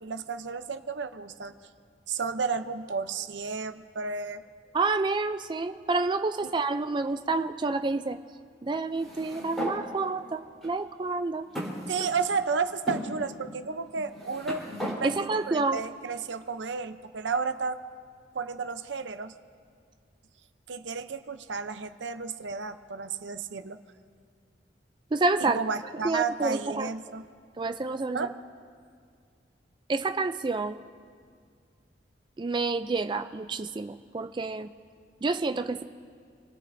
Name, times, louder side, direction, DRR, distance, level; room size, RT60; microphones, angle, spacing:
voice 1, 0.0-1.5 2.1-4.4 11.9-14.6 15.0-15.1 15.5-17.8 18.3-19.3 20.7-23.8 25.4-27.2 28.1-28.3, right 5 dB, 85° right, 9 dB, 0.7 m, -32 dB
voice 2, 4.7-8.2 8.6-11.5 15.0-15.8 25.1-25.6 26.0-26.9 27.6-28.3 29.9-30.8 32.4-34.7 35.2-35.8, right 3 dB, 25° right, 8 dB, 0.4 m, -28 dB
sound 1, 8.9-9.8 10.6-10.7 11.5-12.4 12.9-13.1 13.9-15.0, equal, ahead, 3.9 m, -35 dB
28.0 x 18.5 x 2.7 m, 2.1 s
head